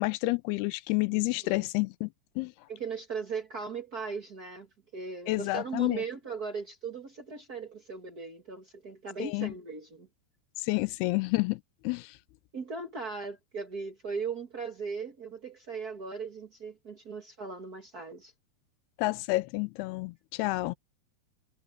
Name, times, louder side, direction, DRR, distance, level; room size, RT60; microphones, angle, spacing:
voice 1, 0.0-2.1 2.4-2.5 5.3-6.0 9.2-9.5 10.6-12.1 19.0-20.8, left 22 dB, 80° left, 2.5 m, -29 dB
voice 2, 1.1-1.7 2.7-4.7 4.9-10.1 12.5-18.3, right 5 dB, 60° right, 0.9 m, -38 dB
omnidirectional pair, 4.7 m